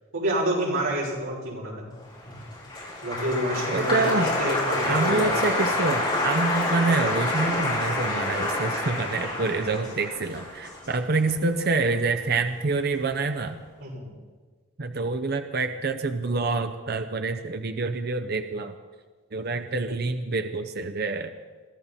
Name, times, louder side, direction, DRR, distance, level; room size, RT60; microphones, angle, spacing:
voice 1, 0.1-1.9 3.0-5.5 13.8-14.1, right 1 dB, 75° right, -5 dB, 6.2 m, -28 dB
Applause, 2.1-12.5 12.8-13.4, left 2 dB, 25° left, 6.1 m, -28 dB
voice 2, 3.7-4.3 4.9-13.6 14.8-18.7 19.3-21.3, right 3 dB, 45° right, 7 dB, 0.6 m, -27 dB
22.5 x 13.5 x 4.2 m, 1.4 s
head